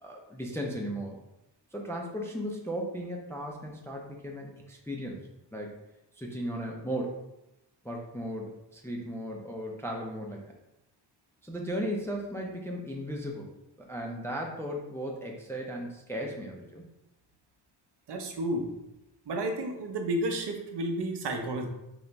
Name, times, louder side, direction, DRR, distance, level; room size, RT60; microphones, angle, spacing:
voice 1, 0.0-1.2 1.7-5.2 5.5-5.8 6.1-7.2 7.8-10.4 11.4-13.5 13.8-16.8, equal, 5° left, 0 dB, 0.4 m, -36 dB
voice 2, 18.1-18.7 19.3-21.7, right 1 dB, 60° right, 4 dB, 0.7 m, -31 dB
4.0 x 2.9 x 3.3 m, 0.89 s
wide cardioid pair, 150°, 46 cm